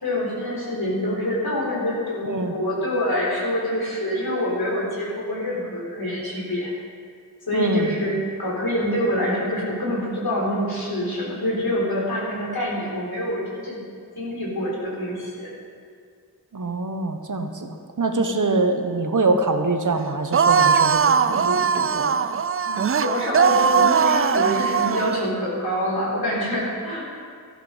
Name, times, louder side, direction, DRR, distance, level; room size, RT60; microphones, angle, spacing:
voice 1, 0.0-6.7 7.5-13.8 14.2-15.5 22.6-27.1, left 1 dB, 70° left, -4 dB, 3.9 m, -26 dB
voice 2, 2.2-2.5 7.5-7.9 16.5-22.2, right 3 dB, 55° right, 6 dB, 1.2 m, -24 dB
sound 1, 20.3-25.2, right 6 dB, 35° right, 0.4 m, -20 dB
13.0 x 11.5 x 5.1 m, 2.1 s
wide cardioid pair, 70°, 38 cm